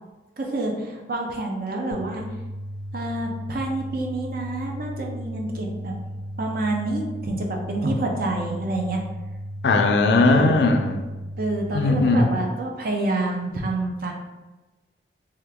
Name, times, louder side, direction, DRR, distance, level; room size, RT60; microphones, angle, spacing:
voice 1, 0.4-2.3 2.9-6.0 6.4-9.0 10.3-10.6 11.4-14.1, right 2 dB, 55° right, 1 dB, 0.5 m, -28 dB
sound 1, 1.9-11.9, equal, 15° right, 0.7 m, -35 dB
voice 2, 9.6-11.1 11.7-12.4, left 3 dB, 65° left, 4 dB, 0.4 m, -19 dB
2.9 x 2.3 x 3.4 m, 1.2 s
head